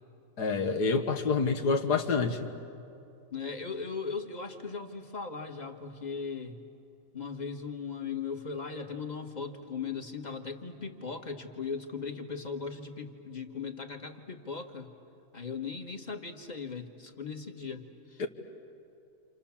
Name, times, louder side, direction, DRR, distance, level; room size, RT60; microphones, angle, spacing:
voice 1, 0.4-2.5 18.2-18.3, left 4 dB, 80° left, 6 dB, 2.0 m, -27 dB
voice 2, 3.3-6.6 7.1-14.9 15.3-18.2, left 5 dB, 25° left, 5 dB, 1.6 m, -38 dB
29.0 x 28.0 x 7.3 m, 2.7 s
omnidirectional pair, 1.7 m